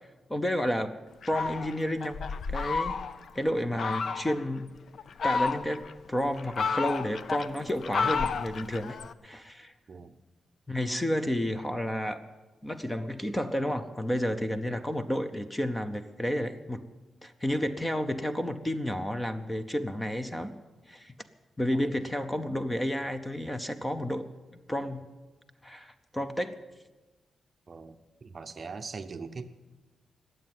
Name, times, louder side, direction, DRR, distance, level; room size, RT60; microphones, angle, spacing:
voice 1, 0.3-1.0 1.3-2.2 2.5-3.0 3.3-4.7 5.2-9.0 9.2-9.7 10.7-12.2 12.6-16.8 17.2-20.5 20.9-21.1 21.6-24.2 24.7-25.0 25.6-26.6, equal, 10° left, 10 dB, 0.6 m, -31 dB
Fowl, 1.2-3.3 3.8-4.4 5.0-5.9 6.3-9.1, left 5 dB, 50° left, 0.5 m, -31 dB
voice 2, 9.9-10.2 14.7-14.9 21.7-21.9 27.7-29.5, right 4 dB, 35° right, 9 dB, 0.7 m, -42 dB
20.0 x 7.7 x 9.2 m, 1.2 s
wide cardioid pair, 170°, 0 cm